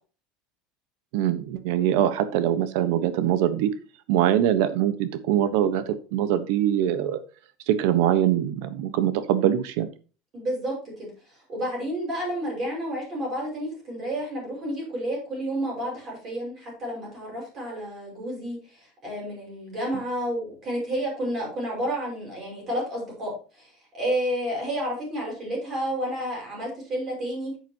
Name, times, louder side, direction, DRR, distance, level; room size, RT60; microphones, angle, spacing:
voice 1, 1.1-3.7 4.1-7.2 7.7-9.9, right 11 dB, 60° right, 12 dB, 1.2 m, -23 dB
voice 2, 10.3-11.1 11.5-27.5, equal, 25° right, -3 dB, 5.6 m, -30 dB
10.5 x 8.2 x 3.0 m, 0.35 s
cardioid pair, 180°, 0 cm